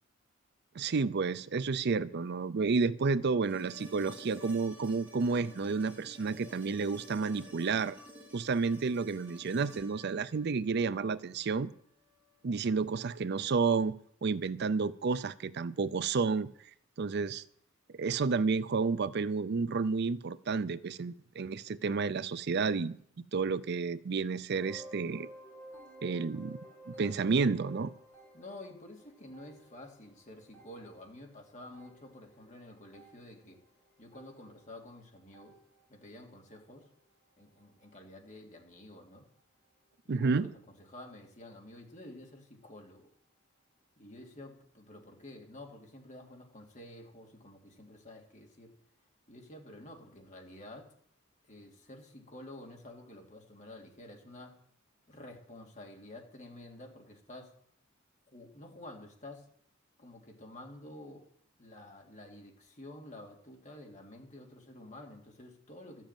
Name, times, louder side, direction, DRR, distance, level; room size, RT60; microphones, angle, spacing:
voice 1, 0.7-8.0 8.3-11.7 12.4-14.0 14.2-16.5 17.0-17.4 18.0-22.9 23.3-25.3 26.0-26.6 26.9-27.9 40.1-40.5, right 4 dB, 55° right, 0.5 m, -31 dB
sound 1, 3.4-11.5 13.6-13.7, equal, 5° right, 3.9 m, -52 dB
sound 2, 24.6-36.1 36.3-36.8 37.4-37.6 37.9-38.0 38.6-38.7, right 1 dB, 15° left, 4.2 m, -54 dB
voice 2, 28.3-33.6 34.0-35.5 35.9-36.9 37.4-39.3 40.0-43.1 44.0-48.7 49.3-50.9 51.5-54.5 55.1-57.5 58.3-59.4 60.0-61.3 61.6-66.1, left 1 dB, 40° left, 2.9 m, -50 dB
13.0 x 7.5 x 9.0 m
head